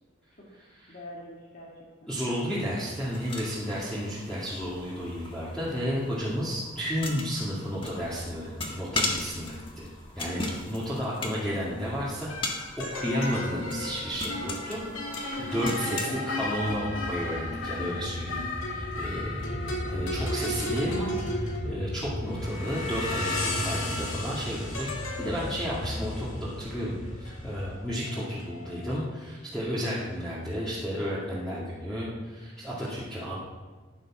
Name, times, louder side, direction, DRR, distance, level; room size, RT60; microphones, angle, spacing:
voice 1, 0.9-2.1 16.0-16.5, left 1 dB, 45° left, -4 dB, 2.2 m, -46 dB
voice 2, 2.1-9.9 10.1-10.4 10.7-14.8 15.2-33.4, equal, 5° left, -10 dB, 2.4 m, -32 dB
sound 1, 2.9-16.1, left 2 dB, 25° left, 1.8 m, -38 dB
sound 2, 11.1-11.4 12.3-29.0, left 1 dB, 85° left, 2.5 m, -35 dB
sound 3, 16.4-27.8, equal, 70° left, 5.8 m, -36 dB
14.5 x 10.0 x 6.3 m, 1.4 s
head